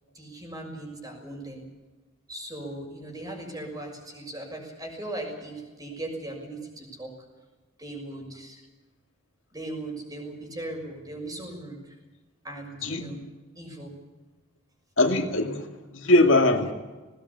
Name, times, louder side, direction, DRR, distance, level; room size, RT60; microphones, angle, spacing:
voice 1, 0.1-1.6 2.3-7.1 7.8-8.6 9.5-11.9 12.4-13.2 13.5-14.0, right 1 dB, 20° right, 2 dB, 6.4 m, -38 dB
voice 2, 15.0-15.7 15.9-16.7, left 2 dB, 65° left, 4 dB, 2.3 m, -21 dB
19.5 x 18.5 x 8.5 m, 1.2 s
head